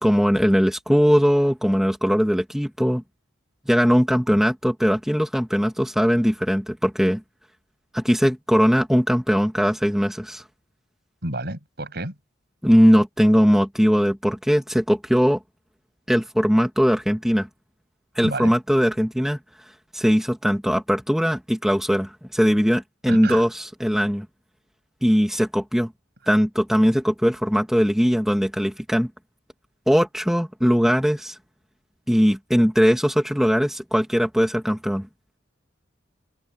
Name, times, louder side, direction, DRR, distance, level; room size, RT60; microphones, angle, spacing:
voice 1, 0.0-3.0 3.7-7.2 7.9-10.4 12.6-15.4 16.1-17.5 18.2-19.4 19.9-24.3 25.0-25.9 26.3-29.1 29.9-31.4 32.1-35.1, equal, ahead, 2.5 m, -20 dB
voice 2, 11.2-12.2 18.2-18.6 23.1-23.4, right 2 dB, 55° right, 7.7 m, -30 dB
head